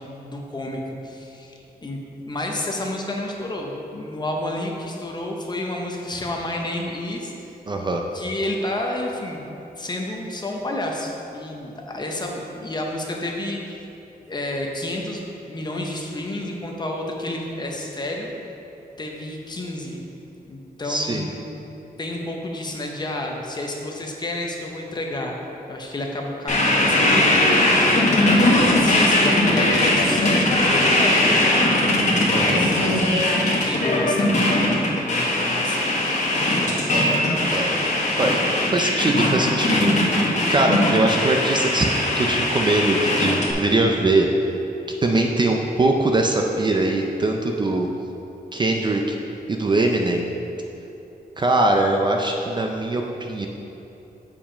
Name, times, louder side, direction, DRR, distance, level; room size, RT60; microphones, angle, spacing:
voice 1, 0.0-2.0 2.2-7.3 8.1-9.4 9.8-13.6 14.3-18.3 19.0-20.0 20.5-21.5 22.0-25.3 25.7-27.4 28.2-31.7 32.3-32.8 33.6-36.1, left 1 dB, 25° left, 0 dB, 0.7 m, -30 dB
voice 2, 7.7-8.0 20.9-21.3 32.3-32.6 36.9-37.2 37.5-37.8 38.2-38.4 38.7-41.9 42.2-44.3 45.0-47.9 48.5-49.0 49.5-50.3 51.4-53.0 53.3-53.5, right 2 dB, 30° right, 2 dB, 0.4 m, -22 dB
sound 1, 26.5-43.5, left 1 dB, 45° left, 1.4 m, -20 dB
7.4 x 4.7 x 5.0 m, 3.0 s
wide cardioid pair, 175°, 16 cm